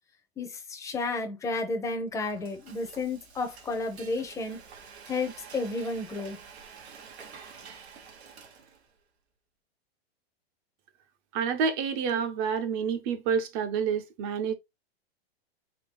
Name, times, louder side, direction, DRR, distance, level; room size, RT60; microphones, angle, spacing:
voice 1, 0.4-4.6 5.1-6.4, left 3 dB, 10° left, 0.7 m, -32 dB
Frying (food), 2.0-9.0, right 6 dB, 90° right, 1.4 m, -49 dB
voice 2, 11.3-14.5, right 6 dB, 30° right, 0.7 m, -28 dB
3.8 x 3.3 x 3.7 m
hypercardioid pair, 145°, 31 cm